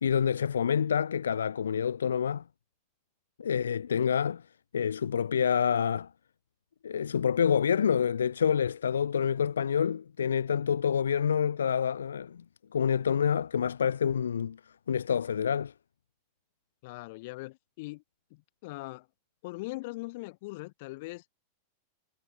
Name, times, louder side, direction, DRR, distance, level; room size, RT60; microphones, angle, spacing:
voice 1, 0.0-2.4 3.4-4.4 4.7-6.1 6.8-12.4 12.7-14.6 14.9-15.7, left 7 dB, 70° left, 0.5 m, -27 dB
voice 2, 16.8-18.0 18.3-19.1 19.4-21.3, left 22 dB, 50° left, 2.2 m, -41 dB
figure-of-eight pair, 90°, 0 cm